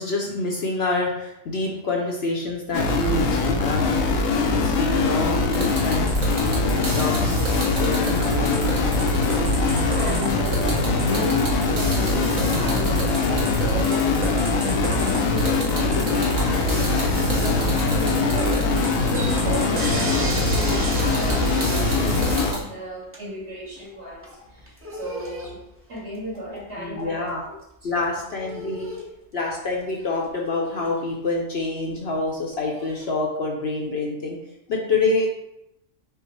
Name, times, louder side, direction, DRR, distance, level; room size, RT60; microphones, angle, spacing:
voice 1, 0.0-3.9 4.4-6.0 6.4-8.8 26.7-27.4 27.8-28.9 29.3-34.4 34.7-35.3, left 3 dB, 60° left, -1 dB, 0.8 m, -27 dB
sound 1, 2.7-22.5, left 3 dB, 80° left, 1.0 m, -22 dB
sound 2, 5.5-22.6, right 2 dB, 75° right, 1.5 m, -32 dB
voice 2, 9.5-18.7 19.0-25.6 25.9-27.6 27.8-27.9, right 1 dB, 55° right, -6 dB, 2.1 m, -34 dB
sound 3, 18.3-20.4 20.7-33.1, equal, 15° right, 0.5 m, -41 dB
5.5 x 2.0 x 4.5 m, 0.84 s
omnidirectional pair, 1.4 m